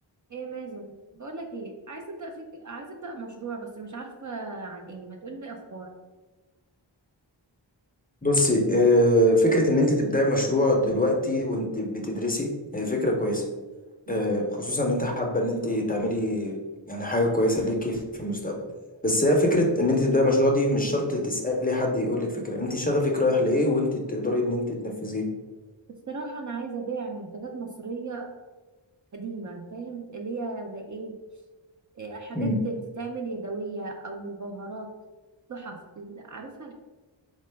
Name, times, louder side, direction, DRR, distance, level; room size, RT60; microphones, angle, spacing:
voice 1, 0.3-5.9 14.1-14.3 26.1-28.3 29.1-31.1 31.9-34.9 35.5-36.7, right 3 dB, 45° right, 2 dB, 0.4 m, -36 dB
voice 2, 8.2-13.4 14.1-16.6 16.9-18.6 19.0-25.3 32.3-32.6, left 1 dB, 20° left, 0 dB, 0.5 m, -24 dB
3.8 x 2.2 x 3.3 m, 1.2 s
wide cardioid pair, 80°, 45 cm